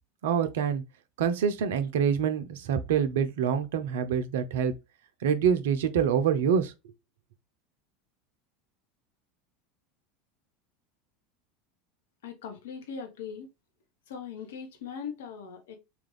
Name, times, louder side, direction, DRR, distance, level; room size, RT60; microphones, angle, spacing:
voice 1, 0.2-0.8 1.2-4.7 5.2-6.7, right 7 dB, 65° right, 0.5 m, -26 dB
voice 2, 12.2-13.5 14.1-15.8, left 6 dB, 65° left, 1.0 m, -40 dB
3.4 x 2.5 x 3.2 m
figure-of-eight pair, 75°, 0 cm